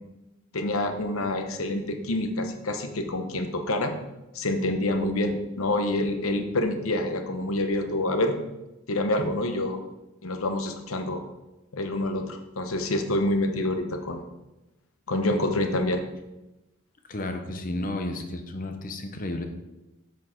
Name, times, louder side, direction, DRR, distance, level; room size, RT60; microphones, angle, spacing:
voice 1, 0.5-3.9 4.3-8.4 8.9-9.8 10.2-11.2 11.7-14.2 15.1-16.0, left 1 dB, 70° left, 5 dB, 1.0 m, -27 dB
voice 2, 17.1-19.4, left 1 dB, 40° left, 6 dB, 0.8 m, -32 dB
7.3 x 6.1 x 4.4 m, 1.0 s
head